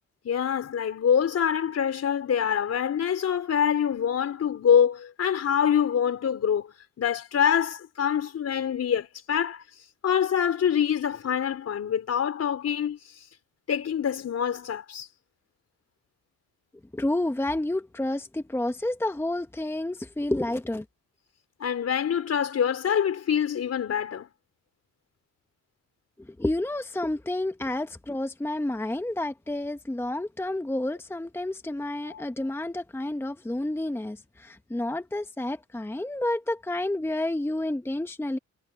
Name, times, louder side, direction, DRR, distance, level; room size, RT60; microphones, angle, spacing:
voice 1, 0.2-9.6 10.0-13.0 13.7-15.1 21.6-24.3 32.1-32.2, left 8 dB, 55° left, 4.3 m, -25 dB
voice 2, 16.9-20.8 26.4-38.4, left 1 dB, 10° left, 1.1 m, -30 dB
cardioid pair, 90°, 30 cm